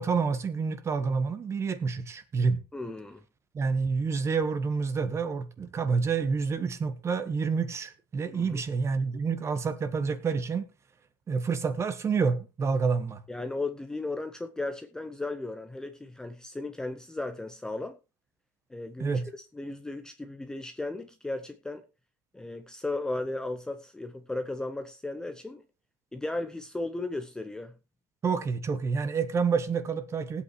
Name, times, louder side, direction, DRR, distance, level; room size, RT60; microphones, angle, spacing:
voice 1, 0.0-2.6 3.5-10.7 11.3-13.2 19.0-19.2 28.2-30.4, right 5 dB, 25° right, 1.4 m, -28 dB
voice 2, 2.7-3.2 8.3-8.6 13.3-18.0 18.7-21.8 22.3-25.6 26.1-27.7, left 2 dB, 5° left, 0.7 m, -35 dB
19.5 x 8.5 x 3.2 m
supercardioid pair, 130°, 11 cm